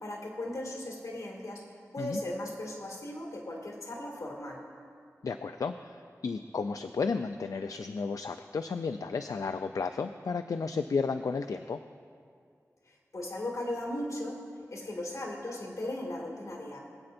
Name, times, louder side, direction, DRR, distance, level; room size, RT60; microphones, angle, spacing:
voice 1, 0.0-1.6 1.9-4.6 13.1-14.4 14.7-16.8, left 1 dB, 65° left, -2 dB, 2.1 m, -37 dB
voice 2, 5.2-11.8, left 4 dB, 85° left, 8 dB, 0.3 m, -33 dB
22.5 x 8.6 x 2.6 m, 2.2 s
wide cardioid pair, 85°, 6 cm